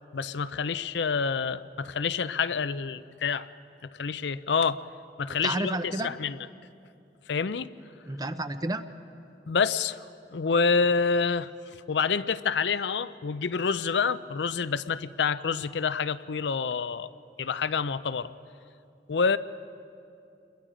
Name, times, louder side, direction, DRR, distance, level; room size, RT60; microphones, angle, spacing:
voice 1, 0.0-3.5 3.9-4.8 5.2-6.4 7.3-7.7 9.5-10.0 10.3-11.5 11.9-17.1 17.4-18.3 19.1-19.4, left 5 dB, 75° left, 14 dB, 0.5 m, -27 dB
voice 2, 5.3-6.1 8.1-8.8, right 2 dB, 20° right, 11 dB, 0.7 m, -31 dB
28.0 x 22.0 x 5.0 m, 2.6 s
head